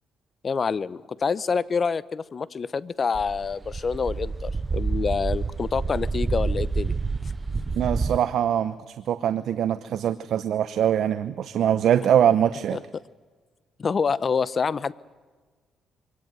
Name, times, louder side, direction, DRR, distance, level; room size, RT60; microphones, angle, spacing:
voice 1, 0.4-6.9 12.7-12.8 13.8-14.9, left 5 dB, 40° left, 19 dB, 0.8 m, -27 dB
sound 1, 3.2-8.2, right 4 dB, 30° right, 0.7 m, -28 dB
voice 2, 7.8-8.7 9.1-12.8, right 9 dB, 70° right, 12 dB, 0.8 m, -23 dB
24.0 x 17.5 x 9.1 m, 1.4 s
cardioid pair, 90°, 0 cm